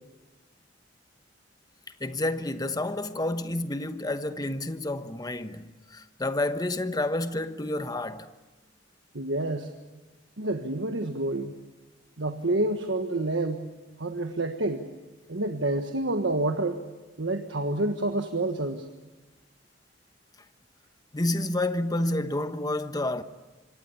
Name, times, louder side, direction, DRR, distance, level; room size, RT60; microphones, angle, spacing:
voice 1, 2.0-8.3 21.1-23.2, left 1 dB, 20° left, 1.1 m, -29 dB
voice 2, 9.1-9.7 10.4-11.5 12.2-13.7 14.0-14.9 15.3-16.8 17.2-18.8, right 2 dB, 80° right, 1.4 m, -28 dB
26.0 x 25.0 x 7.0 m
head